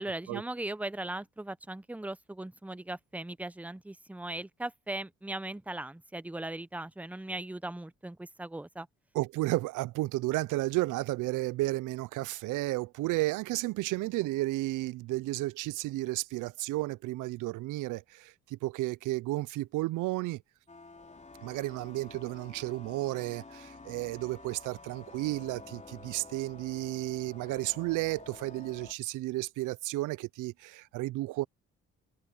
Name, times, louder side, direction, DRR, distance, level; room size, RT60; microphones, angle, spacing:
voice 1, 0.0-8.9, right 1 dB, 5° right, 0.7 m, -38 dB
voice 2, 9.1-20.4 21.4-31.5, right 19 dB, 85° right, 0.5 m, -33 dB
sound 1, 20.7-28.9, left 3 dB, 25° left, 3.8 m, -50 dB
cardioid pair, 90°, 30 cm